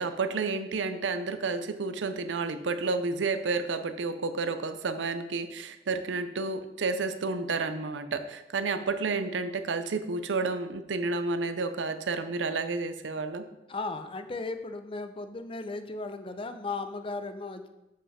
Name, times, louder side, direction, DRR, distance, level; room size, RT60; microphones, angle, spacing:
voice 1, 0.0-13.4, right 4 dB, 90° right, 10 dB, 0.6 m, -31 dB
voice 2, 13.7-17.7, left 3 dB, 30° left, 9 dB, 0.6 m, -36 dB
7.6 x 5.7 x 4.8 m, 0.93 s
head